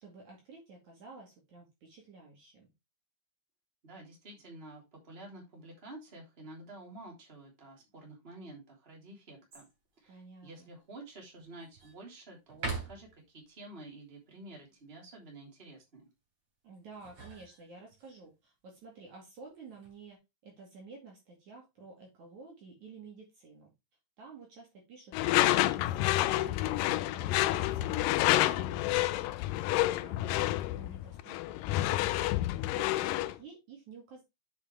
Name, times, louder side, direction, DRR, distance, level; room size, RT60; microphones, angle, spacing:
voice 1, 0.0-2.7 10.1-10.7 16.6-23.7 24.2-32.3 32.7-34.2, right 4 dB, 55° right, -1 dB, 3.3 m, -52 dB
voice 2, 3.8-9.7 10.0-16.1, right 2 dB, 15° right, 0 dB, 3.0 m, -50 dB
sound 1, 9.5-10.0 10.5-10.6 11.2-12.0 12.5-13.3 16.7-18.1 19.5-20.0, right 3 dB, 35° right, 3.7 m, -42 dB
Door / Screech, 25.1-33.4, left 15 dB, 85° left, 2.0 m, -29 dB
8.2 x 6.4 x 3.4 m, 0.23 s
omnidirectional pair, 4.5 m